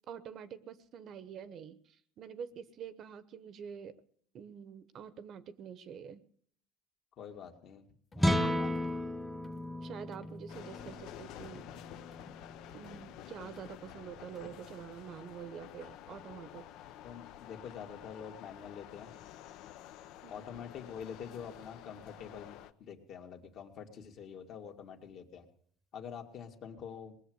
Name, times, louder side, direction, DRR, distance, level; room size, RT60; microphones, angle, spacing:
voice 1, 0.1-3.9 4.3-6.2 8.4-8.5 9.8-11.7 12.7-16.7 20.2-20.4, right 8 dB, 45° right, 14 dB, 0.9 m, -46 dB
voice 2, 7.2-7.8 8.1-8.8 17.0-19.1 20.3-25.5 25.9-27.2, left 7 dB, 50° left, 4 dB, 2.1 m, -46 dB
sound 1, 8.1-8.4 8.7-9.1 9.4-9.7 10.1-10.5 10.7-11.1 11.4-11.8 12.1-12.4 12.8-13.2 13.6-13.9 14.3-14.7, left 4 dB, 20° left, 1.3 m, -56 dB
sound 2, 8.1-14.5, left 1 dB, ahead, 1.0 m, -36 dB
sound 3, 10.5-22.7, left 12 dB, 65° left, 0.8 m, -50 dB
20.0 x 7.5 x 7.9 m, 0.62 s
cardioid pair, 125°, 0 cm